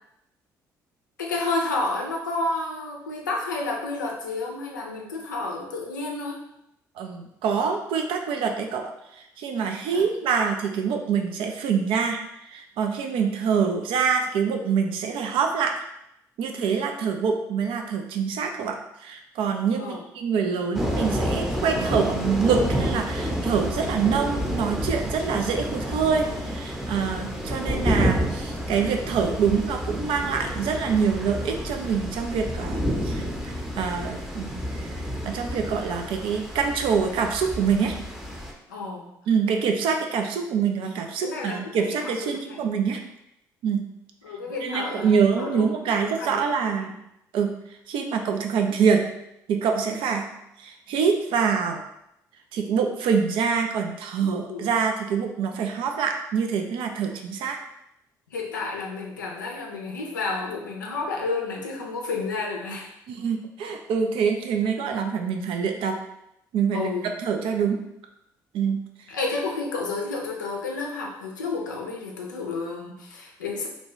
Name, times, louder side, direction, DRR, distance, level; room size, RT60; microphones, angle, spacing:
voice 1, 1.2-6.4 9.9-10.0 19.8-20.0 38.7-39.1 41.2-42.6 44.2-46.4 54.5-54.7 58.3-62.9 66.7-67.1 69.1-73.7, left 3 dB, 90° left, 0 dB, 0.4 m, -31 dB
voice 2, 7.0-15.8 16.4-38.0 39.3-43.0 43.6-43.8 44.6-47.0 47.3-47.5 47.9-49.1 49.5-51.9 52.5-57.6 63.1-66.0 66.5-67.8 68.5-68.8, right 6 dB, 65° right, 4 dB, 0.4 m, -25 dB
sound 1, 20.7-38.5, equal, 5° right, 0.7 m, -29 dB
2.6 x 2.2 x 3.0 m, 0.81 s
hypercardioid pair, 50°, 10 cm